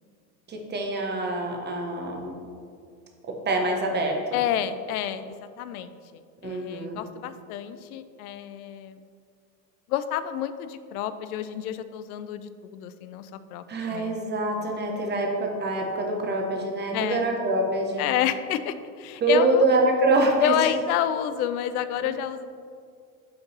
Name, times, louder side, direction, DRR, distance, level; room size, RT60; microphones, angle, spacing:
voice 1, 0.5-2.3 3.4-4.2 6.4-7.0 13.7-18.0 19.2-20.5 22.0-22.1, right 2 dB, 25° right, 2 dB, 1.1 m, -25 dB
voice 2, 4.3-9.0 9.9-14.2 16.9-17.4 18.0-19.7 20.4-22.4, left 10 dB, 90° left, 12 dB, 0.5 m, -29 dB
5.7 x 3.9 x 5.4 m, 2.2 s
supercardioid pair, 115°, 43 cm